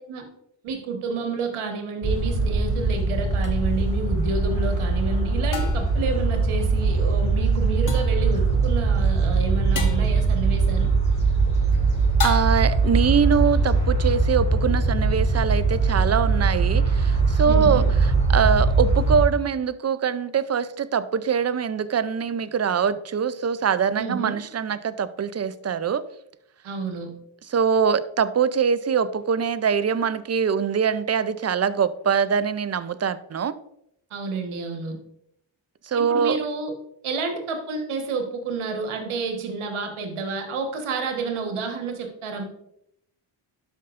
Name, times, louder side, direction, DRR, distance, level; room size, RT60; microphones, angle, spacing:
voice 1, 0.6-10.9 17.4-17.9 24.0-24.4 26.6-27.1 34.1-35.0 35.9-36.7 37.0-42.5, right 4 dB, 85° right, 4 dB, 1.5 m, -30 dB
sound 1, 2.0-19.2, right 3 dB, 15° left, 3.0 m, -21 dB
sound 2, 3.4-3.6 5.5-6.0 7.9-8.2 9.8-10.1 12.2-12.8, left 5 dB, 40° left, 1.3 m, -31 dB
voice 2, 12.2-17.8 18.3-26.0 27.5-33.6 35.9-36.4, right 7 dB, 35° right, 15 dB, 0.5 m, -23 dB
12.0 x 5.5 x 2.5 m, 0.74 s
cardioid pair, 70°, 48 cm